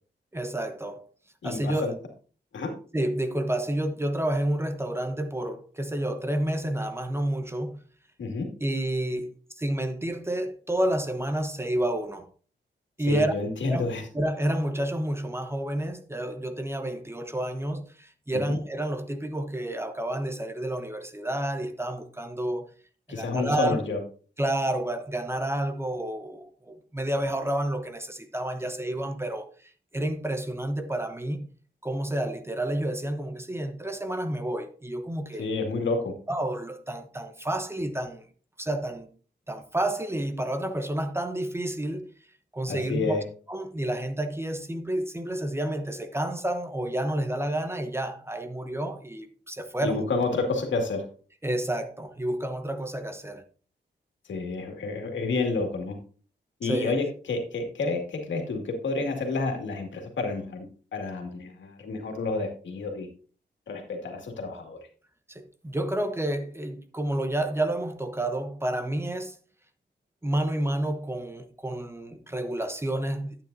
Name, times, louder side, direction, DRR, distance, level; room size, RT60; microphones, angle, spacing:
voice 1, 0.3-1.1 1.4-1.9 2.9-7.8 8.6-12.3 13.0-13.3 13.7-13.8 14.1-22.7 23.1-23.8 24.4-31.5 31.8-35.4 36.3-38.2 38.6-39.1 39.5-42.1 42.5-43.2 43.5-50.0 51.4-53.4 56.6-57.0 65.3-69.4 70.2-73.4, right 1 dB, 15° right, 0.8 m, -30 dB
voice 2, 1.4-1.9 2.5-2.7 8.2-8.5 13.1-14.0 18.3-18.6 23.1-24.0 35.4-36.1 42.7-43.2 49.8-51.1 54.2-56.0 56.6-60.7 60.9-63.1 63.7-64.8, left 3 dB, 85° left, 2.1 m, -29 dB
10.5 x 8.8 x 2.6 m
wide cardioid pair, 105°, 19 cm